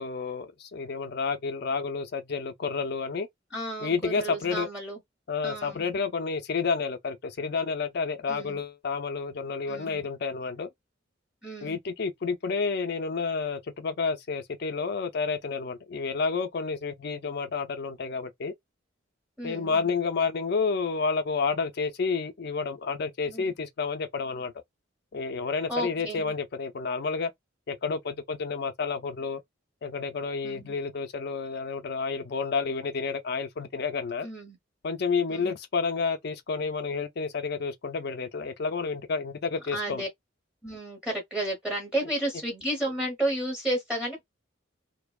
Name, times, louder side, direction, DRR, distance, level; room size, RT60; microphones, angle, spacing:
voice 1, 0.0-3.3 3.8-4.7 5.3-10.7 11.6-18.5 19.4-24.5 25.1-27.3 27.7-29.4 29.8-34.3 34.8-40.0, left 4 dB, 55° left, 0.4 m, -30 dB
voice 2, 3.5-5.0 5.4-5.8 8.3-8.6 9.7-9.9 11.4-11.8 19.4-19.7 23.3-23.5 25.7-26.2 30.4-30.7 34.2-34.6 35.3-35.5 39.7-40.1 40.6-44.2, right 1 dB, 5° right, 0.9 m, -32 dB
2.7 x 2.1 x 2.3 m
head